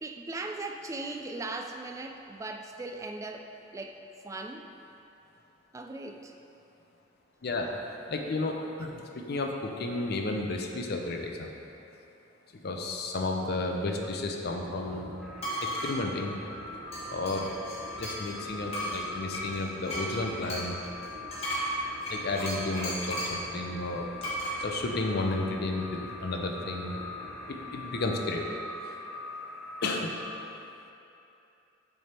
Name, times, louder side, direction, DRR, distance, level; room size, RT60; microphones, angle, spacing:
voice 1, 0.0-4.0 4.2-4.7 5.7-6.3 13.8-14.1, right 2 dB, 15° right, 4 dB, 0.3 m, -39 dB
voice 2, 7.4-7.8 8.1-11.5 12.5-15.1 15.6-16.4 17.1-17.5 18.0-20.8 22.1-24.1 24.6-27.0 27.5-28.5 29.8-30.2, left 2 dB, 55° left, 2 dB, 0.6 m, -32 dB
sound 1, 14.5-28.2, right 1 dB, 65° right, 0.9 m, -50 dB
sound 2, 15.2-30.2, left 2 dB, ahead, 0.8 m, -43 dB
sound 3, 15.4-15.9 16.9-18.3 18.7-23.4 24.2-24.6, equal, 30° left, 1.4 m, -35 dB
7.0 x 3.4 x 4.3 m, 2.8 s
head